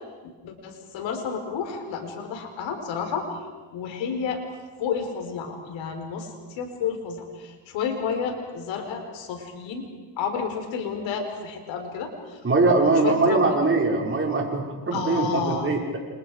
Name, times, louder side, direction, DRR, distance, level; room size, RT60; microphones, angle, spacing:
voice 1, 0.4-3.3 3.7-4.4 4.8-9.9 10.2-12.4 12.8-13.6 14.9-15.7, left 6 dB, 90° left, 4 dB, 4.8 m, -31 dB
voice 2, 12.4-15.8, right 3 dB, 30° right, 0 dB, 5.7 m, -22 dB
29.0 x 27.5 x 5.0 m, 1.4 s
cardioid pair, 115°, 44 cm